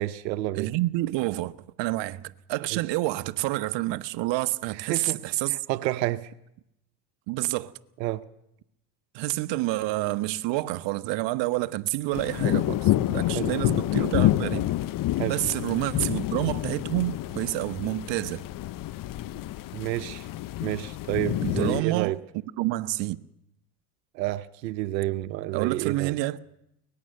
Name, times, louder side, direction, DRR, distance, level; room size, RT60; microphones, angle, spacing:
voice 1, 0.0-0.7 2.7-2.8 4.7-5.2 5.5-6.3 8.0-8.2 13.3-13.5 15.2-15.4 19.7-20.3 20.6-22.2 24.1-26.2, right 16 dB, 90° right, 1.0 m, -29 dB
voice 2, 0.5-5.6 7.3-7.7 9.1-14.7 15.2-18.4 21.4-22.2 22.6-23.2 25.5-26.4, right 18 dB, 60° right, 1.1 m, -28 dB
sound 1, 12.1-21.8, left 15 dB, 40° left, 0.8 m, -28 dB
23.5 x 19.0 x 6.6 m
supercardioid pair, 95°, 49 cm